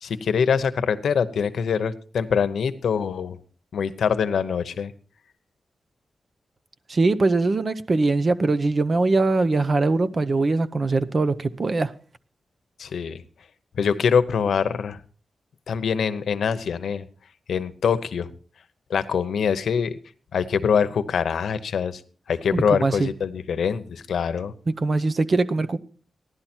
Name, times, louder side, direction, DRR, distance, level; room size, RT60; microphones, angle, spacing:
voice 1, 0.0-3.4 3.7-4.9 12.8-13.2 13.8-15.0 15.7-17.0 17.5-18.3 18.9-20.0 20.3-22.0 22.3-24.5, left 6 dB, 90° left, 0.9 m, -24 dB
voice 2, 6.9-11.9 22.5-23.1 24.8-25.8, right 3 dB, 35° right, 0.7 m, -22 dB
16.0 x 11.5 x 4.4 m
wide cardioid pair, 145°, 0 cm